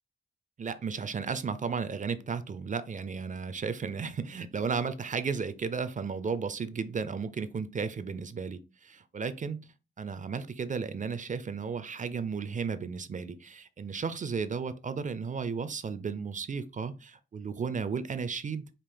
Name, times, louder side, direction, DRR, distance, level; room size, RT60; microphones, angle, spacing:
voice 1, 0.6-9.7 10.0-18.7, right 5 dB, 35° right, 0.4 m, -34 dB
5.0 x 2.4 x 3.7 m
cardioid pair, 90°, 21 cm